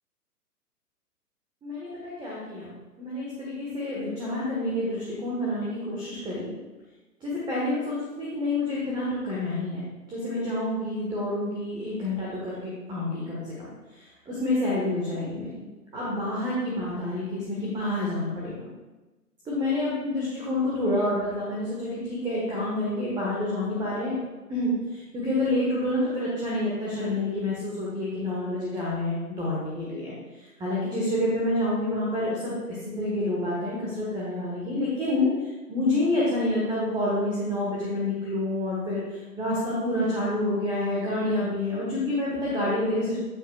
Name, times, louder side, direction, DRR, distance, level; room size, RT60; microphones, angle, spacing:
voice 1, 1.6-6.5 7.2-9.8 10.1-13.5 13.9-15.6 15.9-18.7 19.5-24.2 24.5-32.6 33.0-43.2, left 1 dB, 10° right, -6 dB, 1.4 m, -28 dB
9.3 x 8.2 x 2.4 m, 1.1 s
figure-of-eight pair, 120°, 47 cm